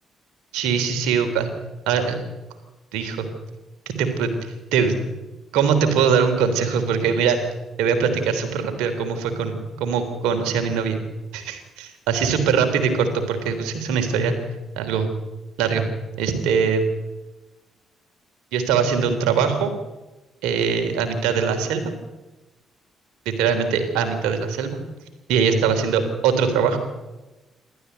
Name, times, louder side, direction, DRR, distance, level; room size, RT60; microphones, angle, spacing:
voice 1, 0.5-1.5 1.9-2.2 2.9-3.3 3.8-5.0 5.5-7.4 7.8-11.0 11.3-14.3 14.8-15.1 15.6-15.8 16.2-16.8 18.5-19.7 20.4-21.8 23.2-24.8 25.3-26.8, right 6 dB, 70° right, 6 dB, 3.4 m, -22 dB
27.5 x 13.0 x 8.1 m, 1.1 s
figure-of-eight pair, 45°, 0 cm